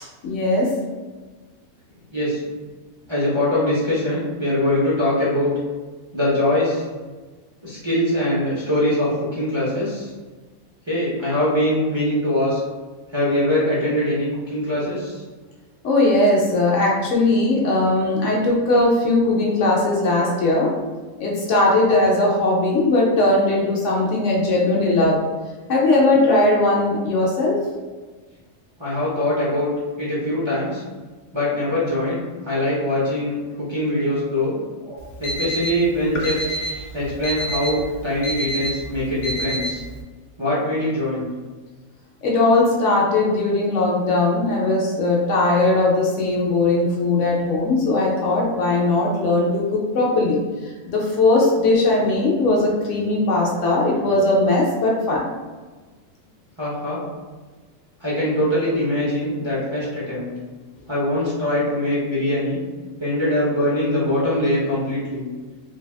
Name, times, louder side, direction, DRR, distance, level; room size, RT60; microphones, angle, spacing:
voice 1, 0.2-0.7 15.8-20.7 21.2-25.2 25.7-27.6 34.9-35.0 42.2-55.2, left 2 dB, 65° left, -3 dB, 0.8 m, -19 dB
voice 2, 3.1-5.5 6.1-6.8 7.6-10.1 10.9-12.6 13.1-15.2 28.8-29.7 30.0-30.8 31.3-32.2 32.4-34.6 35.2-36.3 36.9-39.8 40.4-41.2 56.6-57.0 58.0-60.3 60.9-62.6 63.0-65.3, left 1 dB, 45° right, -9 dB, 0.3 m, -22 dB
Alarm, 35.0-40.0, right 1 dB, 90° left, 1.1 m, -29 dB
3.3 x 2.2 x 2.3 m, 1.3 s
omnidirectional pair, 1.6 m